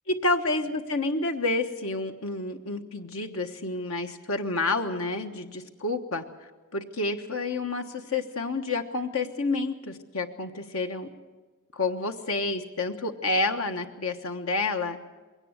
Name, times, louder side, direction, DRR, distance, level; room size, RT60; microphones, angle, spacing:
voice 1, 0.1-6.2 6.7-11.1 11.7-15.0, left 2 dB, 75° left, 6 dB, 1.3 m, -29 dB
21.5 x 17.5 x 8.1 m, 1.3 s
head